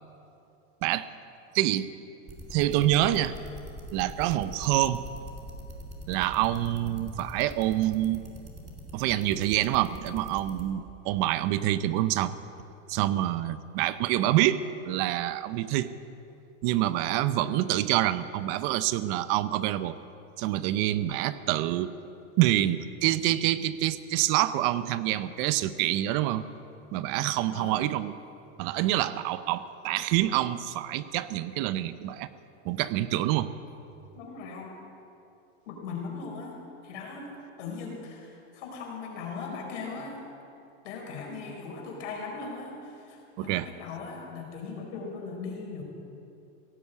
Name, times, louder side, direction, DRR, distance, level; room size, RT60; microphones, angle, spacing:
voice 1, 1.5-1.9 2.5-3.3 3.9-5.0 6.1-8.2 8.9-12.3 12.9-15.9 16.6-20.0 20.4-21.9 22.4-26.4 26.9-28.1 28.6-32.3 32.6-33.5 43.4-43.7, right 14 dB, 50° right, 14 dB, 0.6 m, -26 dB
sound 1, 2.3-10.6, equal, 20° right, 2.6 m, -42 dB
voice 2, 27.5-27.9 34.1-34.7 35.7-36.6 36.8-40.2 40.8-45.8, left 4 dB, 75° left, 0 dB, 4.7 m, -39 dB
17.0 x 9.6 x 8.1 m, 2.7 s
supercardioid pair, 140°, 36 cm